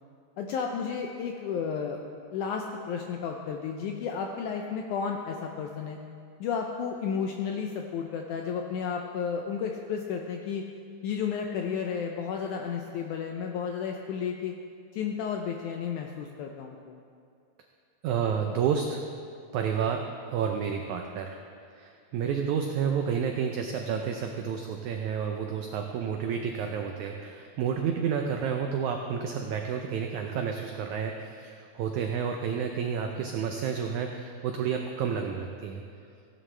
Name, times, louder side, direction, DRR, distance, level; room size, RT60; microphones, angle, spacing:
voice 1, 0.4-2.0 2.3-6.0 6.4-10.7 11.0-14.6 14.9-17.0, left 6 dB, 80° left, 2 dB, 1.8 m, -32 dB
voice 2, 18.0-19.0 19.5-21.4 21.7-35.8, right 7 dB, 85° right, 4 dB, 1.7 m, -30 dB
16.0 x 11.0 x 3.3 m, 2.4 s
omnidirectional pair, 4.2 m